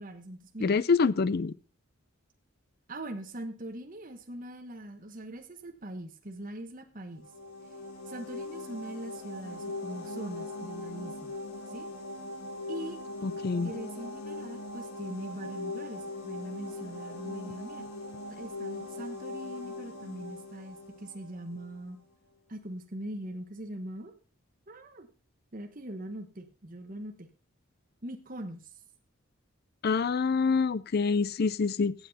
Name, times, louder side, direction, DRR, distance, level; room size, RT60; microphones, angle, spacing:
voice 1, 0.0-0.7 2.9-7.2 8.1-11.3 11.7-11.9 12.7-13.0 13.5-17.8 18.3-22.0 22.5-24.1 24.7-25.1 25.5-27.3 28.0-28.7, right 1 dB, 40° right, 1.2 m, -42 dB
voice 2, 0.6-1.5 13.2-13.7 29.8-31.9, left 4 dB, 45° left, 0.4 m, -26 dB
sound 1, 7.1-21.8, left 2 dB, 90° left, 3.1 m, -40 dB
15.5 x 7.8 x 4.2 m
head